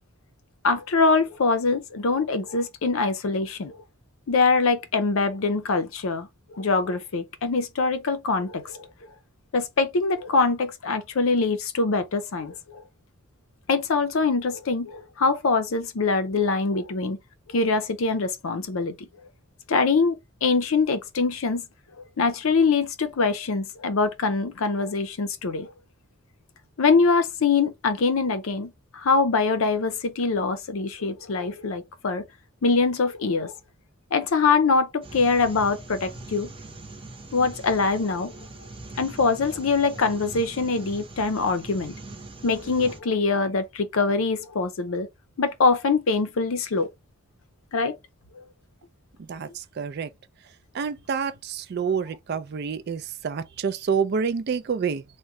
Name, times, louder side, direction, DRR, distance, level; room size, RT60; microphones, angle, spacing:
voice 1, 0.6-3.7 4.3-6.3 6.6-8.8 9.5-12.5 13.7-17.2 17.5-18.9 19.7-21.6 22.2-25.7 26.8-32.3 32.6-33.5 34.1-36.5 37.3-38.4 39.0-41.9 42.4-45.1 45.4-46.9 47.7-48.0, left 4 dB, 65° left, 0.5 m, -23 dB
sound 1, 35.0-43.0, right 2 dB, 25° right, 0.8 m, -42 dB
voice 2, 49.3-50.1 50.7-55.0, right 6 dB, 45° right, 0.3 m, -28 dB
3.6 x 2.2 x 3.0 m
head